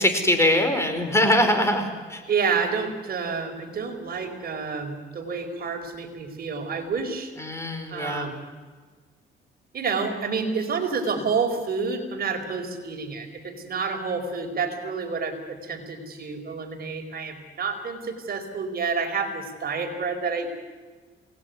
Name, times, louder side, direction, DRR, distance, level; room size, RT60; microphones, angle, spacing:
voice 1, 0.0-2.2 7.4-8.3, left 1 dB, 15° left, 7 dB, 4.8 m, -22 dB
voice 2, 2.3-7.3 7.9-8.4 9.7-20.5, right 5 dB, 50° right, 5 dB, 4.7 m, -29 dB
28.0 x 19.5 x 9.6 m, 1.4 s
cardioid pair, 90°, 20 cm